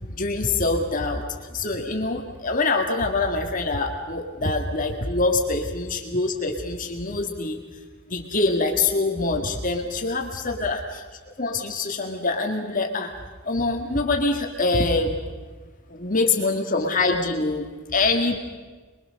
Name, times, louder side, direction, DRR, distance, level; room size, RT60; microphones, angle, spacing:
voice 1, 0.1-1.2 1.5-7.6 8.1-11.0 11.4-13.1 13.4-15.2 15.9-18.4, left 3 dB, 40° left, 3 dB, 1.9 m, -24 dB
27.0 x 22.5 x 6.5 m, 1.4 s
head